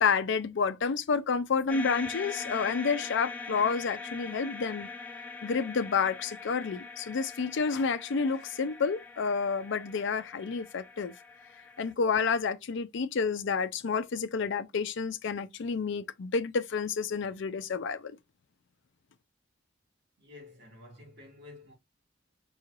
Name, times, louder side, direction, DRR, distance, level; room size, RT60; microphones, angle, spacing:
voice 1, 0.0-4.9 5.4-11.1 11.8-18.2, left 5 dB, 60° left, 0.4 m, -29 dB
sound 1, 1.7-11.9, left 4 dB, 10° left, 0.6 m, -42 dB
voice 2, 20.2-21.7, left 2 dB, 55° right, 2.5 m, -50 dB
5.4 x 3.1 x 2.4 m
head